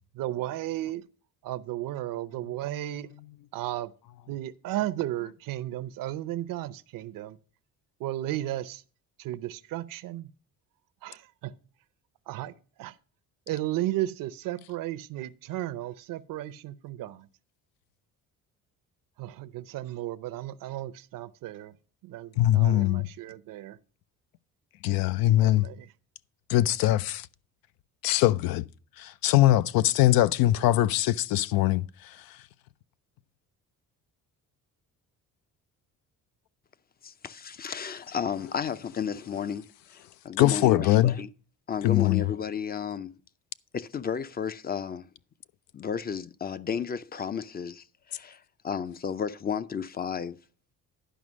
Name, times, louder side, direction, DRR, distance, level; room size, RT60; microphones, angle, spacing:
voice 1, 0.1-1.0 1.4-3.1 3.5-3.9 4.3-7.4 8.0-8.8 9.2-10.3 11.0-11.5 12.3-13.0 13.5-17.3 19.2-21.8 22.0-23.8 25.4-25.9, right 14 dB, 70° right, 0.7 m, -34 dB
voice 2, 22.4-23.1 24.8-25.7 26.5-27.3 28.0-28.6 29.0-32.4 38.4-38.5 40.4-41.2 41.8-42.3, left 14 dB, 80° left, 0.5 m, -22 dB
voice 3, 37.0-41.3 41.7-43.1 43.7-45.1 45.7-50.4, left 7 dB, 25° left, 0.5 m, -33 dB
11.0 x 5.1 x 6.2 m
cardioid pair, 100°, 34 cm